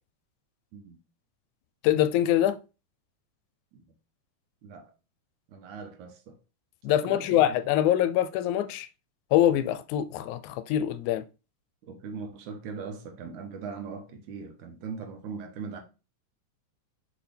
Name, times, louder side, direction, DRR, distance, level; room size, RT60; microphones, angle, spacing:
voice 1, 1.8-2.6 6.8-8.9 9.3-11.2, left 12 dB, 85° left, 1.9 m, -24 dB
voice 2, 5.5-6.4 6.9-7.4 11.8-15.8, right 5 dB, 80° right, 2.5 m, -40 dB
6.0 x 4.9 x 3.3 m
omnidirectional pair, 3.4 m